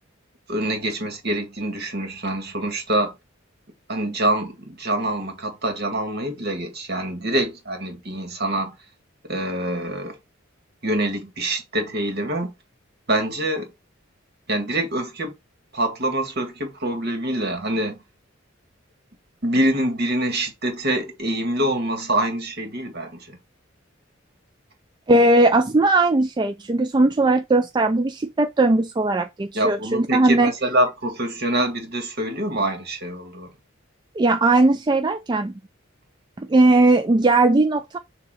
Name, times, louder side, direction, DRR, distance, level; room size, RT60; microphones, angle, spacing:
voice 1, 0.5-3.1 3.9-8.7 9.3-10.2 10.8-12.5 13.1-13.7 14.5-15.3 15.7-18.0 19.4-23.4 29.5-33.5, right 1 dB, 50° right, 1.9 m, -25 dB
voice 2, 25.1-30.5 34.2-35.5 36.4-38.0, right 2 dB, 20° right, 0.3 m, -18 dB
6.8 x 2.9 x 5.0 m
head